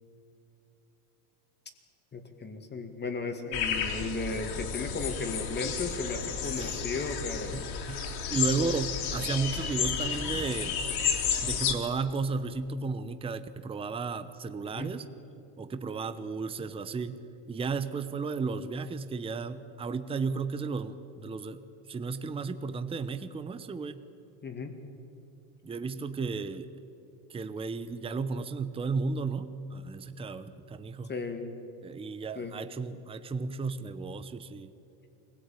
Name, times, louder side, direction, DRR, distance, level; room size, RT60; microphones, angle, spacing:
voice 1, 2.1-7.7 14.6-14.9 24.4-24.8 31.1-31.5 32.4-32.5, left 3 dB, 20° left, 6 dB, 2.1 m, -35 dB
sound 1, 3.5-11.7, left 7 dB, 50° left, 3.2 m, -32 dB
voice 2, 6.4-6.8 7.5-7.6 7.9-8.0 8.3-10.8 11.4-15.1 15.6-17.2 17.5-21.6 21.9-24.0 25.6-26.7 27.3-31.1 31.8-34.7, right 4 dB, 10° right, 11 dB, 0.7 m, -34 dB
24.0 x 17.0 x 9.1 m, 2.9 s
supercardioid pair, 135°, 48 cm